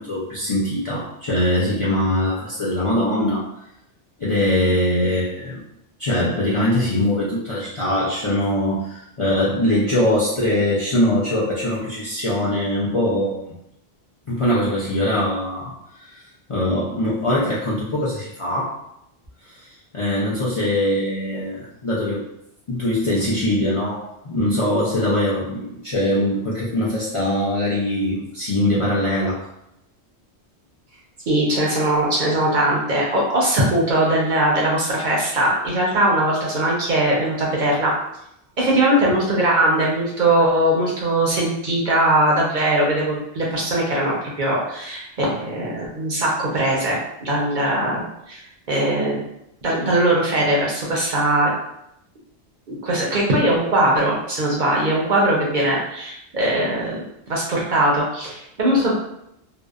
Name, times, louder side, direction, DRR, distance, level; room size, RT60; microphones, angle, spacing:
voice 1, 0.0-3.5 4.2-5.6 6.0-13.5 14.3-16.2 16.5-18.8 19.5-19.6 19.9-22.2 22.7-29.4, left 1 dB, 50° left, -8 dB, 0.4 m, -22 dB
voice 2, 31.3-37.9 38.6-49.2 49.6-51.5 52.7-57.0 57.3-59.0, right 1 dB, 55° right, -4 dB, 0.6 m, -20 dB
2.6 x 2.0 x 2.3 m, 0.79 s
omnidirectional pair, 1.1 m